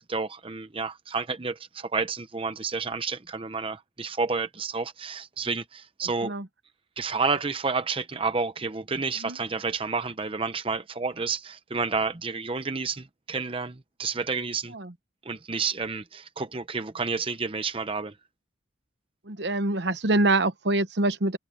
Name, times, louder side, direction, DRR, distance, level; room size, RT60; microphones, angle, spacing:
voice 1, 0.0-6.3 7.0-14.7 15.2-18.2, right 4 dB, 30° right, 0.8 m, -30 dB
voice 2, 19.3-21.4, right 2 dB, 60° right, 1.0 m, -25 dB
head